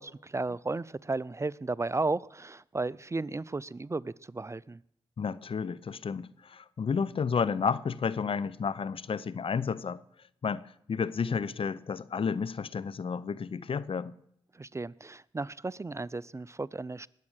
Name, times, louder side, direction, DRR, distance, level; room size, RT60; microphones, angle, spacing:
voice 1, 0.0-4.8 14.5-17.1, right 3 dB, 25° right, 0.5 m, -34 dB
voice 2, 5.2-10.0 10.4-14.1, left 6 dB, 60° left, 0.7 m, -31 dB
20.0 x 8.4 x 6.5 m
supercardioid pair, 40°, 11 cm